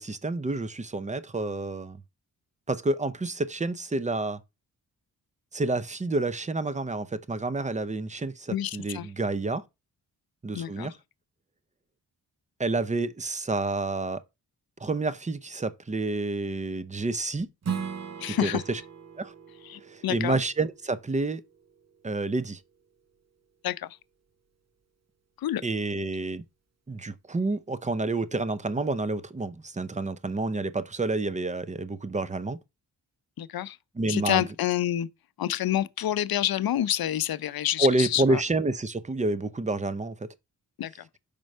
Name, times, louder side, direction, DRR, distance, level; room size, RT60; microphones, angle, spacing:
voice 1, 0.0-2.0 2.7-4.4 5.5-9.6 10.4-10.9 12.6-14.2 14.8-17.5 18.4-18.8 19.2-19.3 19.9-21.4 22.0-22.6 25.6-26.4 26.9-32.6 34.0-34.5 37.8-40.3, right 2 dB, 20° right, 0.6 m, -29 dB
voice 2, 8.5-9.1 10.5-10.9 18.2-18.6 19.6-20.4 23.6-23.9 25.4-25.6 33.4-33.8 34.1-35.1 35.4-38.4 40.8-40.9, left 12 dB, 65° left, 0.6 m, -28 dB
Strum, 17.6-22.8, right 6 dB, 40° right, 0.9 m, -39 dB
5.3 x 4.5 x 5.4 m
cardioid pair, 70°, 39 cm